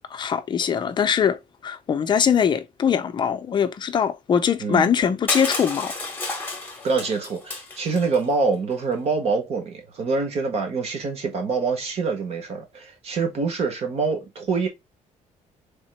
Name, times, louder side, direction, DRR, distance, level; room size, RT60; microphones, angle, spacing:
voice 1, 0.0-5.9, left 7 dB, 35° left, 0.5 m, -22 dB
Crushing, 5.3-8.2, left 3 dB, 15° left, 1.1 m, -31 dB
voice 2, 6.8-14.7, right 4 dB, 50° right, 1.4 m, -25 dB
3.7 x 2.8 x 4.1 m
cardioid pair, 160°, 14 cm